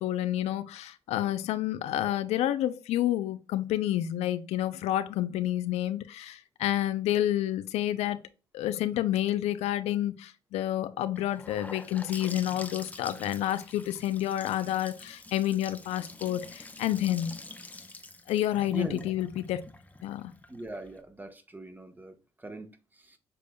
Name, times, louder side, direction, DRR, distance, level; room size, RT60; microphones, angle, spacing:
voice 1, 0.0-8.2 8.5-17.3 18.3-19.6 20.0-20.3, left 13 dB, 75° left, 0.5 m, -29 dB
Gurgling / Sink (filling or washing) / Bathtub (filling or washing), 11.2-21.0, left 2 dB, 15° left, 0.8 m, -46 dB
voice 2, 18.7-19.1 20.5-23.2, right 1 dB, 15° right, 1.1 m, -41 dB
6.7 x 3.4 x 2.2 m
supercardioid pair, 65°, 11 cm